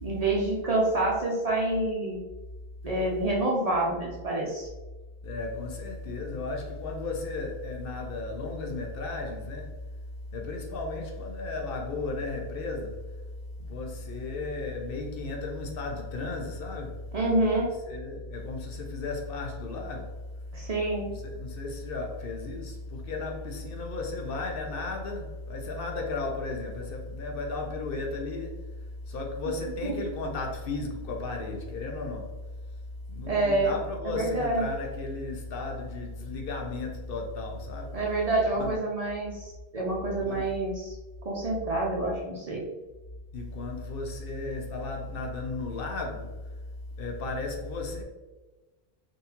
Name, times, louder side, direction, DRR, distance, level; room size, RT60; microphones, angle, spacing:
voice 1, 0.0-2.2 2.8-4.7 17.1-17.7 20.5-21.1 29.8-29.9 33.3-33.7 34.0-34.7 37.9-41.0 41.2-42.6, right 2 dB, 45° right, 0.5 m, -27 dB
voice 2, 5.2-9.8 10.3-13.1 13.6-17.0 17.9-20.1 21.1-28.7 29.1-32.4 33.1-38.0 38.6-38.7 40.2-40.5 43.3-46.4 47.0-48.0, left 3 dB, 65° left, 0.8 m, -34 dB
3.8 x 2.5 x 2.8 m
omnidirectional pair, 1.0 m